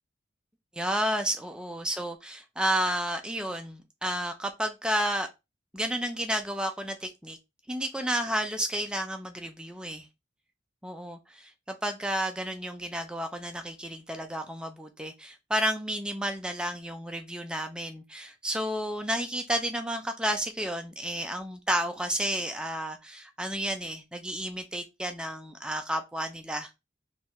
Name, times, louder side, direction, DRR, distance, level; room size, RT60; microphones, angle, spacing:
voice 1, 0.7-5.3 5.7-7.4 7.7-10.1 10.8-26.8, right 1 dB, 5° right, 0.4 m, -31 dB
3.2 x 2.4 x 4.3 m
head